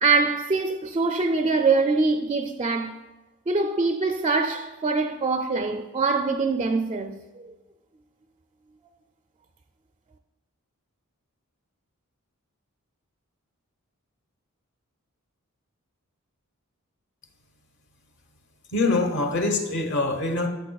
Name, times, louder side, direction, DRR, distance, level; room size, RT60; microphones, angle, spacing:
voice 1, 0.0-3.0 3.5-7.5, right 4 dB, 25° right, 0.4 m, -24 dB
voice 2, 18.7-20.5, left 2 dB, 55° left, 1.1 m, -24 dB
13.0 x 6.4 x 2.3 m
head